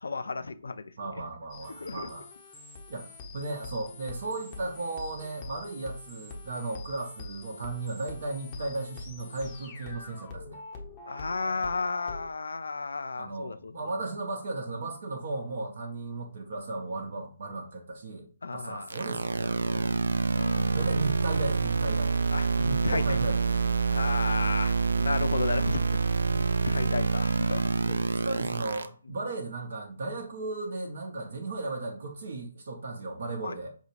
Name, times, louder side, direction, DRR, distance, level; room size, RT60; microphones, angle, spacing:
voice 1, 0.0-0.9 1.8-2.1 11.1-13.9 18.4-18.9 19.7-19.8 20.3-20.9 22.3-23.2 23.9-27.7 33.4-33.5, left 3 dB, 65° left, 12 dB, 0.4 m, -33 dB
voice 2, 1.0-2.3 2.9-10.6 13.1-18.3 18.5-19.9 20.7-22.1 22.6-24.0 27.9-33.7, right 2 dB, 50° right, 1 dB, 0.8 m, -36 dB
sound 1, 1.5-12.3, left 3 dB, 25° left, 0.8 m, -45 dB
sound 2, 18.9-28.8, right 4 dB, 70° right, 0.4 m, -27 dB
5.6 x 2.4 x 3.1 m, 0.39 s
figure-of-eight pair, 140°, 0 cm